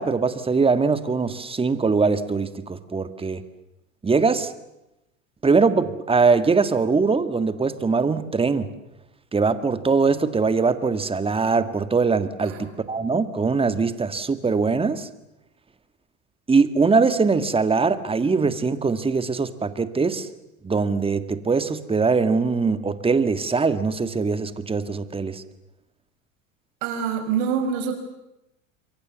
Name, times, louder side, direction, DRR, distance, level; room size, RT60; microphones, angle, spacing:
voice 1, 0.0-3.4 4.0-4.5 5.4-8.7 9.3-15.1 16.5-20.3 20.6-25.4, right 4 dB, 15° right, 12 dB, 1.8 m, -22 dB
voice 2, 26.8-27.9, right 7 dB, 60° right, 6 dB, 5.9 m, -25 dB
28.0 x 23.5 x 7.1 m, 0.91 s
hypercardioid pair, 95°, 41 cm